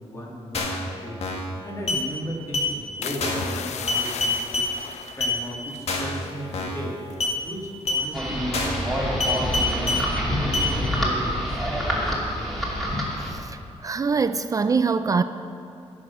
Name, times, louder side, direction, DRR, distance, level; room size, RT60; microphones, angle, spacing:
voice 1, 0.0-7.0 7.4-12.9, equal, 25° left, -3 dB, 2.7 m, -37 dB
sound 1, 0.5-0.8 1.2-1.5 1.9-2.0 2.5-2.7 3.2-3.5 3.9-4.7 5.2-5.4 5.9-6.2 6.5-6.8 7.2-7.4 7.9-8.0 8.5-8.8 9.2-10.0 10.5-10.7, left 3 dB, 70° left, 1.9 m, -25 dB
sound 2, 3.0-7.4 7.9-8.2, left 8 dB, 90° left, 0.6 m, -37 dB
sound 3, 8.1-13.3, equal, ahead, 2.7 m, -26 dB
voice 2, 13.2-15.2, right 5 dB, 30° right, 11 dB, 0.4 m, -24 dB
16.0 x 6.3 x 6.1 m, 2.7 s
wide cardioid pair, 120°, 11 cm